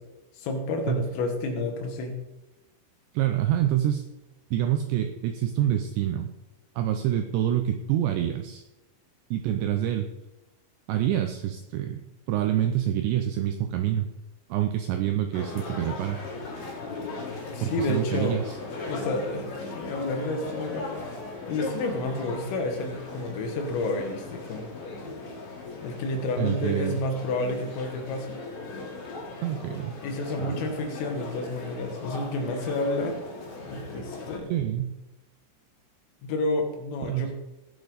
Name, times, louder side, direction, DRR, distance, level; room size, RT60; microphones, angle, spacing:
voice 1, 0.4-2.2 17.5-18.4 18.9-20.9 21.5-24.7 25.8-28.4 30.0-33.2 33.6-34.6 36.2-37.3, left 2 dB, 80° left, 4 dB, 4.2 m, -30 dB
voice 2, 3.1-4.0 4.5-6.3 6.8-8.6 9.3-10.1 10.9-12.0 12.3-14.1 14.5-16.2 17.6-18.6 26.4-27.0 29.4-30.0 30.4-30.7 34.5-34.9 37.1-37.3, right 11 dB, 85° right, 6 dB, 2.5 m, -26 dB
sound 1, 15.3-34.4, left 3 dB, 50° left, 4.0 m, -38 dB
18.5 x 7.1 x 4.0 m, 0.99 s
omnidirectional pair, 5.9 m